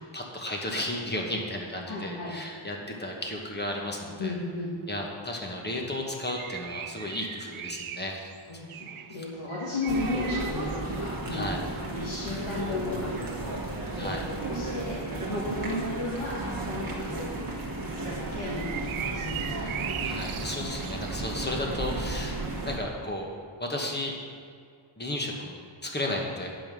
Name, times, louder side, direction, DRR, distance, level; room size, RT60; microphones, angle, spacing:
voice 1, 0.0-4.4 4.9-8.1 9.1-9.2 11.3-11.6 14.0-14.3 20.0-23.3 23.6-24.1 25.0-26.5, left 1 dB, 20° left, 0 dB, 1.2 m, -34 dB
voice 2, 1.8-2.3 4.2-4.7 8.5-13.6 13.9-15.0 15.3-17.6 17.9-19.8, left 2 dB, 80° left, -6 dB, 1.6 m, -34 dB
sound 1, 2.6-3.2 3.4-3.5 3.7-15.9 16.4-16.9 17.2-17.3 17.5-21.1, right 9 dB, 90° right, 0.6 m, -40 dB
sound 2, 9.9-22.8, right 2 dB, 45° right, 1.2 m, -34 dB
8.5 x 5.4 x 6.2 m, 2.1 s
wide cardioid pair, 155°, 48 cm